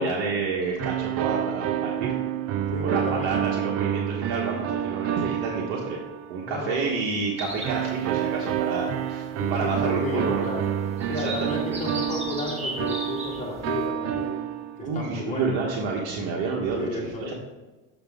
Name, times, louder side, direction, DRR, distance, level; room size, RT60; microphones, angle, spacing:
voice 1, 0.0-2.1 2.8-6.0 6.3-10.5 11.1-11.8 14.8-17.3, right 4 dB, 80° right, -2 dB, 1.3 m, -29 dB
sound 1, 0.8-6.6 7.6-15.0, right 10 dB, 45° right, 0.4 m, -29 dB
voice 2, 2.7-3.3 6.4-6.9 9.4-10.7 11.1-14.4 14.8-15.6 16.7-17.3, left 3 dB, 20° left, -3 dB, 2.3 m, -32 dB
sound 2, 7.4-13.9, right 1 dB, 20° right, 1.7 m, -39 dB
7.8 x 6.0 x 3.6 m, 1.2 s
cardioid pair, 130°, 35 cm